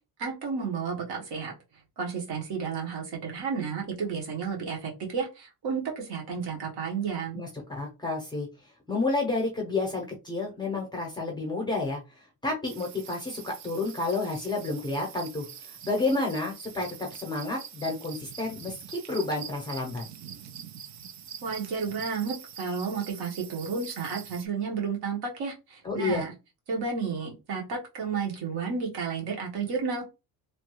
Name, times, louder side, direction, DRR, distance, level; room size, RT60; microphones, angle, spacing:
voice 1, 0.2-1.5 2.0-7.4 21.4-26.3 26.7-30.1, right 5 dB, 65° right, 0 dB, 1.3 m, -32 dB
voice 2, 7.3-8.5 8.9-12.0 12.4-15.5 15.9-20.0 25.8-26.2, left 3 dB, 10° left, 0 dB, 0.7 m, -30 dB
sound 1, 12.7-24.5, right 8 dB, 45° right, 0.4 m, -45 dB
3.0 x 2.2 x 3.1 m, 0.27 s
cardioid pair, 130°, 41 cm